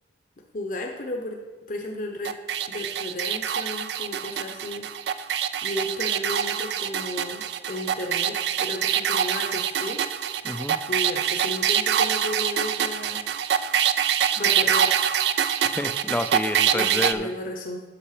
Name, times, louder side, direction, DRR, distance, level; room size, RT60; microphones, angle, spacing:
voice 1, 0.5-1.4 1.7-2.3 2.7-4.9 5.6-10.0 10.4-13.3 14.4-15.0 16.7-17.8, left 1 dB, 50° left, 1 dB, 0.8 m, -34 dB
sound 1, 2.2-17.1, right 9 dB, 70° right, 0.3 m, -25 dB
voice 2, 10.4-10.8 15.6-17.3, left 1 dB, 10° left, 10 dB, 0.4 m, -29 dB
8.6 x 6.6 x 4.8 m, 1.3 s
head